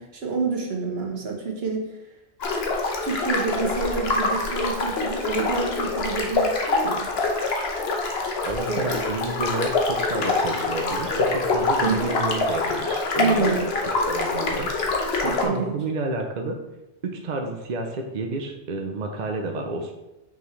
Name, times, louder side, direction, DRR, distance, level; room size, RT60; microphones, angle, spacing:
voice 1, 0.0-1.8 3.0-7.1 8.7-9.0 11.8-12.1 13.2-13.7 15.2-15.8, right 4 dB, 70° right, 1 dB, 1.3 m, -28 dB
sound 1, 2.4-15.5, left 3 dB, 70° left, 1.2 m, -25 dB
voice 2, 8.4-13.6 14.0-14.7 15.2-16.6 17.0-19.9, right 2 dB, 50° right, 3 dB, 0.7 m, -30 dB
5.9 x 5.7 x 3.1 m, 0.97 s
omnidirectional pair, 1.1 m